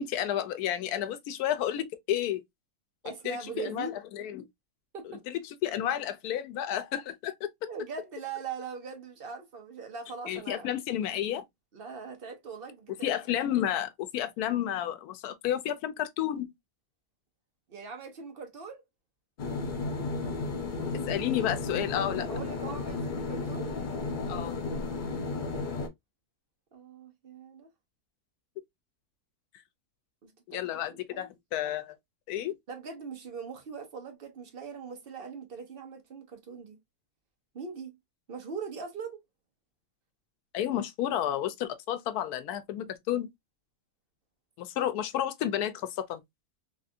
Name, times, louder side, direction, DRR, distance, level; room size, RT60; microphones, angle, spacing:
voice 1, 0.0-2.4 3.2-4.5 5.3-7.5 10.3-11.4 13.0-16.5 21.1-22.3 24.3-24.6 30.5-32.0 32.3-32.6 40.5-43.3 44.6-46.2, left 11 dB, 90° left, 1.1 m, -31 dB
voice 2, 3.0-3.9 4.9-5.2 7.7-10.7 11.7-13.1 17.7-18.8 22.1-23.7 26.7-27.7 30.2-31.3 32.7-36.8 37.5-37.9 38.3-39.2 44.8-44.9, right 5 dB, 45° right, 0.9 m, -41 dB
sound 1, 19.4-25.9, left 3 dB, 55° left, 0.5 m, -33 dB
3.4 x 2.4 x 2.6 m
omnidirectional pair, 1.6 m